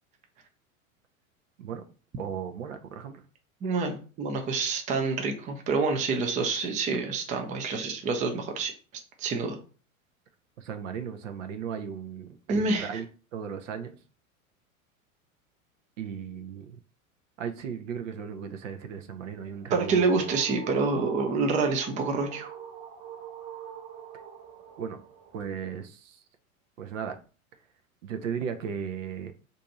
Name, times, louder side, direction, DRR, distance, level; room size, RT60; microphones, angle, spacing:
voice 1, 2.2-3.2 10.6-13.1 13.3-14.0 16.0-16.8 17.4-20.3 24.8-25.0 25.3-26.2 26.8-27.2 28.0-29.3, right 7 dB, 65° right, 7 dB, 0.6 m, -36 dB
voice 2, 3.6-8.7 9.2-9.6 12.5-12.9 19.7-22.5, right 4 dB, 20° right, 5 dB, 0.5 m, -27 dB
sound 1, 19.3-25.4, right 8 dB, 40° right, 0.9 m, -44 dB
2.6 x 2.5 x 4.0 m, 0.37 s
hypercardioid pair, 95°, 42 cm